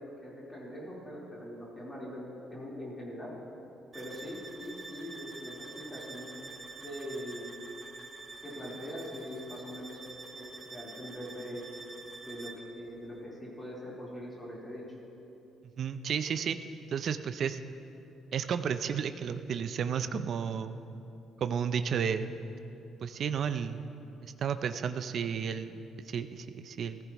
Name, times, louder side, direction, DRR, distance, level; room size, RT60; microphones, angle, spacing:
voice 1, 0.0-2.2 2.5-3.3 3.9-6.3 6.8-7.7 8.4-10.0 10.3-11.6 12.2-14.8, equal, 10° left, -7 dB, 3.8 m, -42 dB
sound 1, 3.9-12.7, right 3 dB, 25° right, 1.0 m, -47 dB
voice 2, 15.8-16.6 16.9-17.6 18.3-20.8 21.4-22.3 23.0-23.8 24.2-25.8 26.1-27.0, right 7 dB, 50° right, 10 dB, 0.5 m, -32 dB
19.5 x 15.0 x 3.0 m, 2.8 s
cardioid pair, 140°, 0 cm